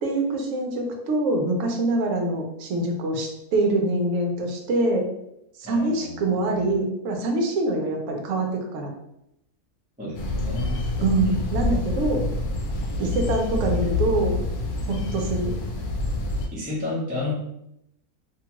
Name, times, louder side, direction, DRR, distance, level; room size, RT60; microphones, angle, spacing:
voice 1, 0.0-5.1 5.6-8.9 11.0-12.2 13.0-14.4 14.9-15.5, right 2 dB, 65° right, 2 dB, 0.9 m, -24 dB
voice 2, 5.6-6.7 10.0-10.8 11.2-11.5 16.5-17.3, left 2 dB, 10° right, -6 dB, 0.5 m, -32 dB
sound 1, 10.1-16.5, left 2 dB, 80° left, 1.0 m, -27 dB
2.8 x 2.3 x 2.9 m, 0.81 s
omnidirectional pair, 1.6 m